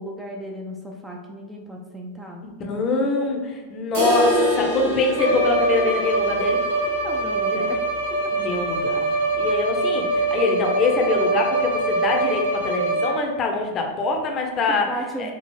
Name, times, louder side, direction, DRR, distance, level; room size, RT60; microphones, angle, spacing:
voice 1, 0.0-2.4 5.8-6.1 7.0-7.8 8.1-8.3 14.7-15.3, right 1 dB, 5° right, 0 dB, 0.4 m, -35 dB
voice 2, 2.4-6.6 7.5-7.7 8.3-14.9 15.2-15.3, left 3 dB, 30° left, 2 dB, 0.7 m, -24 dB
sound 1, 3.9-9.8 10.0-10.1 10.5-10.6 11.1-11.2 12.1-12.2, left 1 dB, 55° right, 1.0 m, -27 dB
Bowed string instrument, 5.1-13.4, right 2 dB, 85° left, 1.2 m, -24 dB
4.5 x 2.7 x 3.0 m, 1.3 s
figure-of-eight pair, 90°, 0 cm